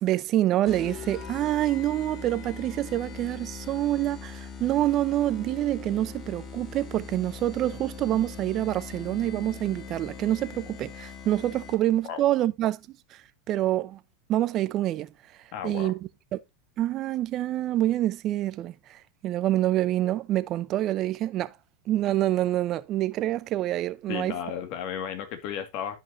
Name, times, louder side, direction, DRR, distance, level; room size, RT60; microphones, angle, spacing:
voice 1, 0.0-12.8 13.5-14.0 14.3-15.1 15.6-15.9 16.3-16.4 16.8-19.0 19.2-21.5 21.9-24.4, right 14 dB, 40° right, 0.7 m, -26 dB
sound 1, 0.7-12.0, left 6 dB, 30° left, 1.8 m, -41 dB
voice 2, 15.5-15.9 24.1-26.0, left 9 dB, 55° left, 2.1 m, -34 dB
12.0 x 5.4 x 2.7 m
hypercardioid pair, 110°, 0 cm